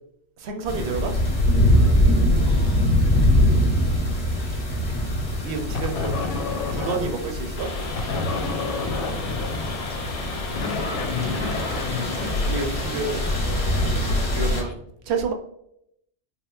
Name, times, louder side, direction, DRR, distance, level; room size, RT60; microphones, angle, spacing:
voice 1, 0.4-1.1 5.4-6.3 6.7-7.7 12.5-13.3 13.8-14.8 15.1-15.3, right 4 dB, 70° right, 4 dB, 0.8 m, -29 dB
sound 1, 0.7-14.6, left 1 dB, 35° left, 0.8 m, -23 dB
voice 2, 2.0-3.7 8.7-10.0, left 1 dB, 5° left, -2 dB, 0.5 m, -43 dB
sound 2, 5.7-7.3 7.9-13.0, left 4 dB, 85° left, 0.9 m, -29 dB
sound 3, 7.6-14.7, left 3 dB, 60° left, 0.4 m, -35 dB
3.6 x 2.8 x 2.3 m, 0.75 s
omnidirectional pair, 1.2 m